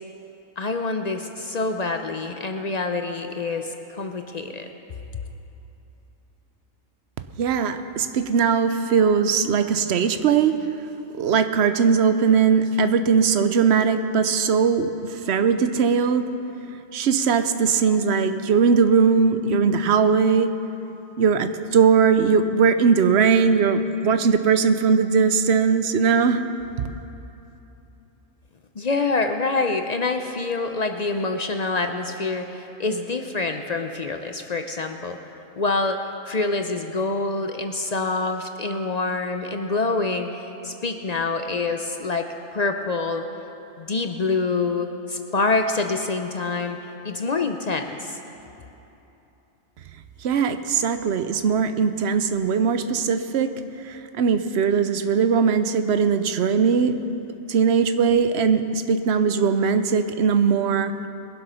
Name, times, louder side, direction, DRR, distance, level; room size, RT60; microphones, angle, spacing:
voice 1, 0.6-4.7 28.8-35.2 35.6-36.0 36.3-43.2 43.8-46.8 47.0-48.2, left 3 dB, 45° left, 5 dB, 0.5 m, -26 dB
voice 2, 7.4-10.6 11.2-16.3 16.9-20.5 21.2-26.4 50.2-53.5 53.8-56.9 57.5-60.9, right 6 dB, 60° right, 9 dB, 0.9 m, -20 dB
21.5 x 7.9 x 5.6 m, 3.0 s
omnidirectional pair, 1.4 m